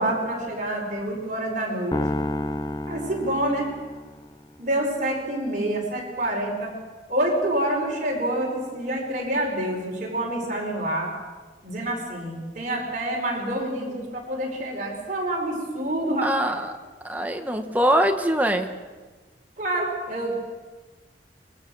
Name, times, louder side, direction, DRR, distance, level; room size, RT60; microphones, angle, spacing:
voice 1, 0.0-2.0 2.9-3.7 4.6-6.7 7.1-11.1 11.6-16.5 19.6-20.3, right 1 dB, 45° right, -1 dB, 5.0 m, -27 dB
sound 1, 1.9-4.3, left 1 dB, 20° left, 0.7 m, -30 dB
voice 2, 16.2-16.7 17.0-18.7, right 1 dB, 10° right, 5 dB, 1.3 m, -23 dB
26.0 x 22.0 x 6.3 m, 1.3 s
head